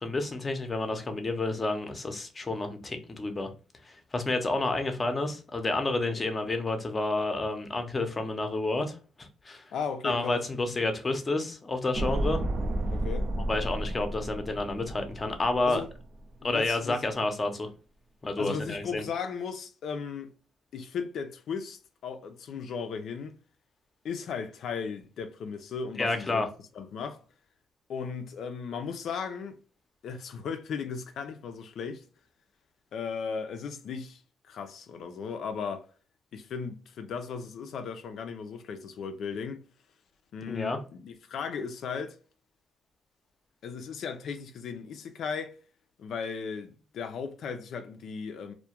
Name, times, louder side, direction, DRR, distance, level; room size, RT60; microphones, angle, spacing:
voice 1, 0.0-3.5 3.8-9.7 10.0-12.4 13.5-15.8 16.4-17.7 18.2-19.0 26.0-26.5 40.5-40.8, left 2 dB, 25° left, 0.6 m, -30 dB
voice 2, 9.7-10.5 12.9-13.3 15.7-15.9 16.4-17.0 18.4-20.3 20.7-23.3 24.0-26.5 26.7-27.2 27.9-29.6 30.0-32.0 32.9-34.2 34.5-35.9 36.3-39.6 40.3-42.2 43.6-45.6 46.0-48.5, left 6 dB, 70° left, 0.4 m, -36 dB
sound 1, 11.9-16.2 16.5-16.6, right 1 dB, 50° right, 0.4 m, -32 dB
2.2 x 2.1 x 2.8 m
cardioid pair, 90°, 0 cm